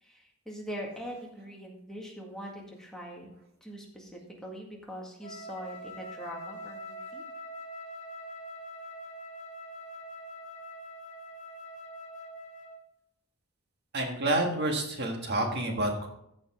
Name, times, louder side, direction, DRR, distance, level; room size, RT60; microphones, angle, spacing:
voice 1, 0.0-3.3 3.6-7.2, equal, 5° left, -2 dB, 1.9 m, -42 dB
Wind instrument woodwind instrument, 5.2-12.9, equal, 40° left, 1.3 m, -44 dB
voice 2, 13.9-16.1, right 1 dB, 55° right, 2 dB, 1.6 m, -29 dB
14.5 x 5.3 x 3.7 m, 0.75 s
head